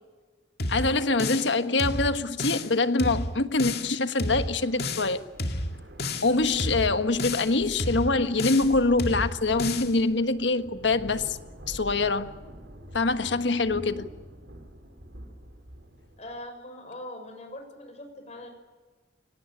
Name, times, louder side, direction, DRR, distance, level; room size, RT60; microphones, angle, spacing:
sound 1, 0.6-1.5 1.8-2.7 3.0-3.9 4.2-5.1 5.4-6.3 6.6-7.5 7.8-8.7 9.0-9.9, left 2 dB, 60° left, 2.2 m, -31 dB
voice 1, 0.7-5.2 6.2-11.4 11.7-12.3 12.9-14.1, left 3 dB, 85° left, 10 dB, 1.4 m, -24 dB
sound 2, 4.2-16.4, equal, 75° right, 4.9 m, -45 dB
voice 2, 16.2-18.5, left 1 dB, 40° left, 5 dB, 6.1 m, -41 dB
25.5 x 18.5 x 10.0 m, 1.3 s
head